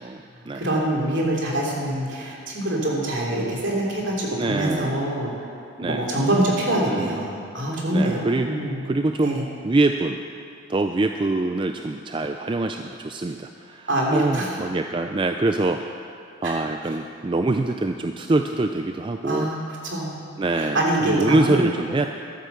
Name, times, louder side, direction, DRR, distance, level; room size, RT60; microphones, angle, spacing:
voice 1, 0.0-0.7 4.4-5.0 5.8-6.1 6.9-7.2 7.9-8.5 8.9-10.2 10.7-16.0 16.4-19.5 20.4-22.1, right 2 dB, 25° right, 6 dB, 0.3 m, -24 dB
voice 2, 0.5-5.3 5.8-8.8 9.2-9.4 13.9-14.5 16.4-16.6 19.2-19.6 19.8-20.2 20.7-21.6, right 1 dB, 65° right, -3 dB, 3.0 m, -24 dB
12.5 x 9.8 x 7.0 m, 2.5 s
head